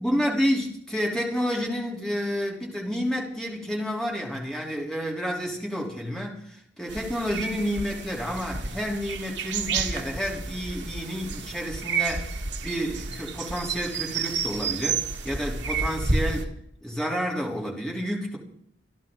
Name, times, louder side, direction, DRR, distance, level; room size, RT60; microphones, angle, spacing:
voice 1, 0.0-12.3 12.6-16.5 16.8-18.4, equal, 5° left, -2 dB, 3.4 m, -30 dB
sound 1, 6.9-16.4, right 4 dB, 65° right, 1.6 m, -31 dB
26.5 x 11.5 x 3.9 m, 0.67 s
head